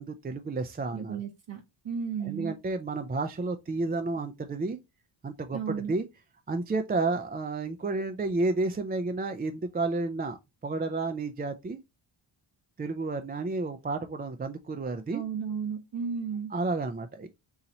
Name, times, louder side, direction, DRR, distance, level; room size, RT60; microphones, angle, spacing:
voice 1, 0.0-1.2 2.2-4.8 5.2-6.1 6.5-10.4 10.6-11.8 12.8-15.2 16.5-17.3, right 3 dB, 20° right, 0.3 m, -31 dB
voice 2, 0.9-2.5 5.5-5.9 15.1-16.5, right 6 dB, 65° right, 1.0 m, -34 dB
3.9 x 2.9 x 4.1 m
wide cardioid pair, 100°, 48 cm